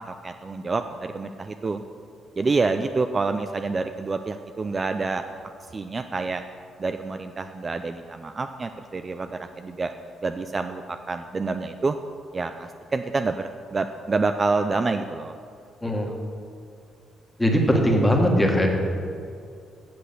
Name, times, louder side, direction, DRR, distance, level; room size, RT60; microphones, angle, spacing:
voice 1, 0.1-1.8 2.4-5.2 5.7-6.4 6.8-9.3 9.6-9.9 10.2-12.0 12.3-15.3 16.1-16.2, right 3 dB, 30° right, 7 dB, 0.4 m, -27 dB
voice 2, 17.4-18.7, equal, 10° left, 1 dB, 1.5 m, -20 dB
7.8 x 6.3 x 6.7 m, 2.4 s
cardioid pair, 90°, 0 cm